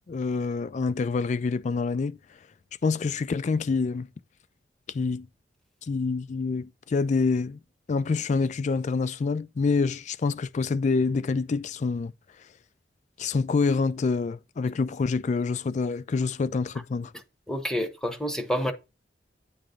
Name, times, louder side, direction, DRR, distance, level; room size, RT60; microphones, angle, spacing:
voice 1, 0.1-2.2 2.8-4.1 4.9-5.3 5.8-7.6 7.9-12.1 13.2-17.1, left 4 dB, 40° left, 0.3 m, -26 dB
voice 2, 17.5-18.7, equal, 5° left, 0.8 m, -28 dB
8.7 x 3.0 x 5.1 m
head